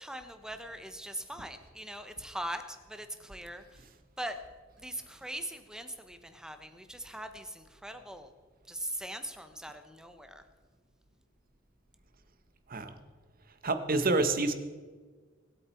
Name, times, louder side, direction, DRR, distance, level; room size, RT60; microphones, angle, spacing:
voice 1, 0.0-3.8 4.2-4.4 4.8-8.3 8.7-10.4, right 1 dB, 5° right, 8 dB, 1.0 m, -41 dB
voice 2, 13.6-14.5, right 2 dB, 45° right, 9 dB, 1.2 m, -27 dB
23.5 x 8.6 x 4.5 m, 1.4 s
head